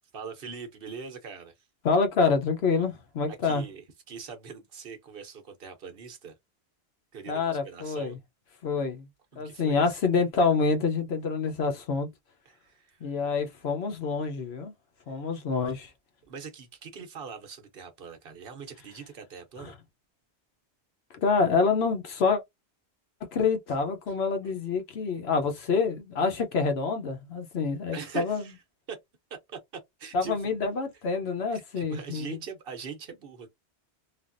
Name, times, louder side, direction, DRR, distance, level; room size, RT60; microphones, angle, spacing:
voice 1, 0.1-1.5 3.3-6.4 7.1-8.2 9.3-10.0 12.5-13.1 15.1-15.2 16.3-19.7 24.4-24.5 27.9-28.6 28.9-29.0 29.3-29.6 30.0-30.5 31.5-33.5, right 6 dB, 60° right, 0.9 m, -42 dB
voice 2, 1.8-3.6 7.3-8.2 8.6-9.1 9.4-12.1 13.0-14.7 15.1-15.9 19.6-19.7 21.1-22.4 23.2-28.5 30.1-32.4, left 4 dB, 75° left, 1.0 m, -27 dB
3.3 x 2.3 x 2.5 m
omnidirectional pair, 1.1 m